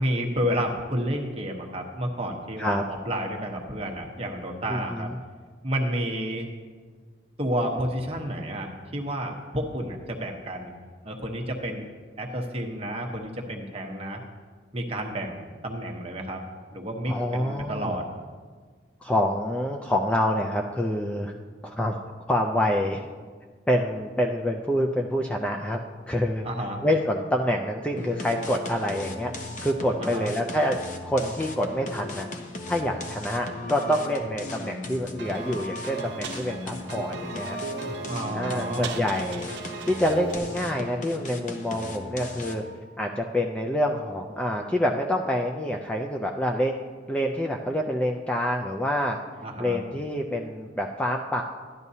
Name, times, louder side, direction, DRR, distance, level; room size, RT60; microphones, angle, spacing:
voice 1, 0.0-5.1 5.6-6.5 7.4-10.7 11.0-11.8 12.2-14.2 14.7-16.4 16.7-18.1 26.4-26.8 30.0-30.3 38.1-39.0 49.4-49.8, equal, 30° right, 1 dB, 1.0 m, -30 dB
voice 2, 4.7-5.1 17.1-18.0 19.0-21.3 21.6-21.9 22.3-23.0 23.7-25.8 26.1-26.5 26.8-29.3 29.6-30.8 31.0-32.3 32.7-37.6 38.3-39.5 39.8-42.6 43.0-46.8 47.1-49.2 49.6-51.4, equal, 5° left, 1 dB, 0.4 m, -27 dB
sound 1, 28.0-42.8, left 2 dB, 40° left, 0.8 m, -37 dB
sound 2, 35.2-40.4, right 4 dB, 65° right, 0.8 m, -37 dB
12.0 x 11.0 x 2.8 m, 1.5 s
head